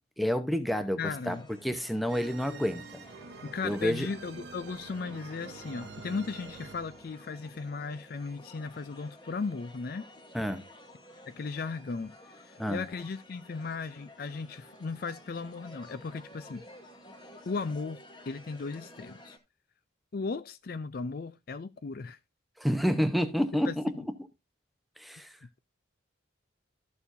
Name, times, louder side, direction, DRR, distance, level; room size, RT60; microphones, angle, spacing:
voice 1, 0.2-1.4 1.6-3.0 3.6-4.1 10.3-10.6 12.6-12.8 22.6-23.8 25.0-25.3, equal, ahead, 0.8 m, -29 dB
voice 2, 1.0-1.5 3.4-10.1 11.3-16.6 17.4-18.0 18.3-19.4 20.1-22.2 23.7-24.1 25.2-25.6, left 4 dB, 50° left, 0.4 m, -36 dB
sound 1, 1.1-19.4, left 1 dB, 25° left, 1.3 m, -53 dB
sound 2, 2.1-7.3, right 4 dB, 60° right, 0.9 m, -47 dB
12.5 x 6.9 x 2.6 m
head